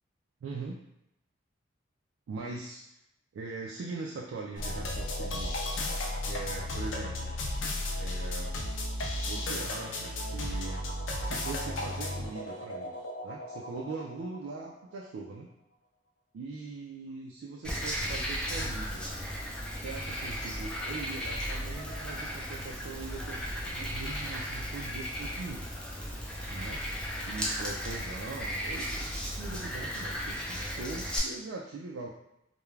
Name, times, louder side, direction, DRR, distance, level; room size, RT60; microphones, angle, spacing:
voice 1, 0.4-0.8 2.3-2.8 3.3-5.5 6.2-7.3 7.9-8.6 9.2-10.8 11.2-12.9 13.2-15.5 16.3-19.1 19.7-25.7 26.5-26.8 27.2-29.0 29.4-32.1, right 3 dB, 80° right, -2 dB, 0.3 m, -41 dB
sound 1, 4.6-14.7, left 1 dB, 70° left, 0.4 m, -34 dB
Frog, 17.6-31.2, equal, 5° left, 0.4 m, -35 dB
2.3 x 2.1 x 3.1 m, 0.85 s
head